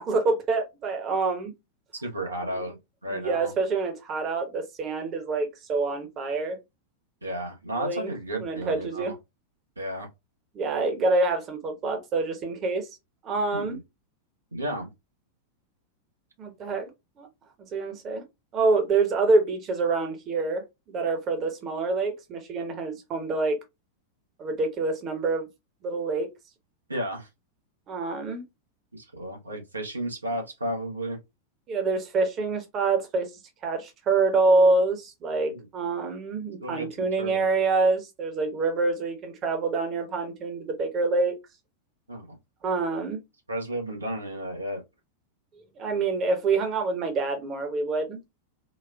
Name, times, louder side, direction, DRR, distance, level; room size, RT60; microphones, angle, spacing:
voice 1, 0.0-1.5 2.5-2.6 3.1-6.6 7.8-8.1 8.4-9.1 10.5-12.9 13.2-13.8 16.4-16.9 17.2-17.3 17.7-18.2 18.5-20.6 20.9-23.6 24.4-25.5 25.8-26.3 27.9-28.4 31.7-33.3 33.6-41.4 42.6-43.2 45.8-48.2, right 3 dB, 30° right, 0.9 m, -26 dB
voice 2, 2.0-3.5 7.2-9.1 9.8-10.1 13.5-13.8 14.5-14.9 26.9-27.3 28.9-31.2 35.5-35.7 36.6-37.5 42.1-42.4 43.5-44.8, right 1 dB, 80° right, 0.9 m, -33 dB
4.0 x 2.3 x 2.3 m
figure-of-eight pair, 90°, 0 cm